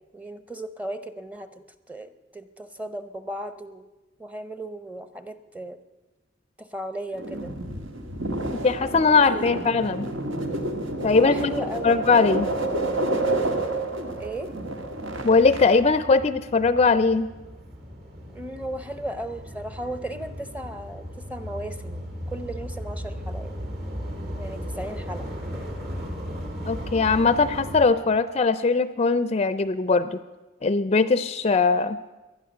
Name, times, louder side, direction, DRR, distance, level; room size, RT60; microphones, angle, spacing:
voice 1, 0.1-1.5 1.9-3.8 4.2-5.8 6.6-7.6 9.1-9.4 11.1-11.9 13.9-14.5 18.3-23.5 24.4-25.3, right 1 dB, 10° right, 11 dB, 0.7 m, -36 dB
sound 1, 7.1-15.8, right 2 dB, 80° right, 1.8 m, -29 dB
voice 2, 8.6-10.1 11.0-11.5 11.8-12.5 15.2-17.3 26.7-30.2 30.6-32.0, left 4 dB, 30° left, 14 dB, 0.4 m, -20 dB
sound 2, 8.6-27.9, equal, 55° right, 3.1 m, -38 dB
18.5 x 11.5 x 6.6 m, 1.1 s
head